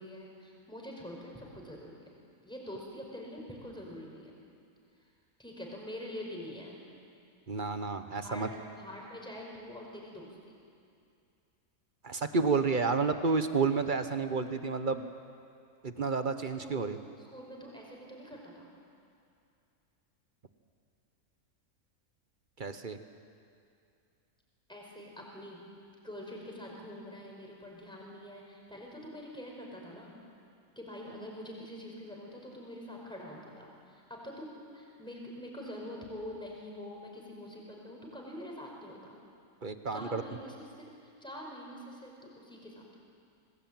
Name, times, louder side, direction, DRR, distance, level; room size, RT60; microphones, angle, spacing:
voice 1, 0.0-2.1 2.4-4.4 5.4-6.8 8.1-8.5 8.8-10.6 16.4-18.7 24.7-25.7 26.0-30.2 30.8-39.2 39.9-43.0, left 1 dB, 5° left, -2 dB, 5.2 m, -45 dB
voice 2, 7.5-8.5 12.0-15.1 15.8-17.0 22.6-23.0 39.6-40.2, right 4 dB, 35° right, 9 dB, 1.1 m, -30 dB
26.5 x 19.0 x 9.0 m, 2.5 s
omnidirectional pair, 1.5 m